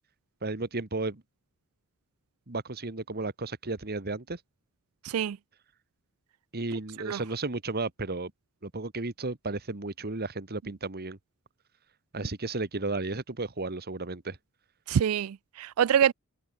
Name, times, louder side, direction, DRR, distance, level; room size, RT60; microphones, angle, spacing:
voice 1, 0.4-1.2 2.5-4.4 6.5-8.3 8.6-11.2 12.1-14.4, right 3 dB, 45° right, 1.7 m, -33 dB
voice 2, 5.0-5.4 7.1-7.2 14.9-16.1, right 8 dB, 75° right, 0.4 m, -25 dB
head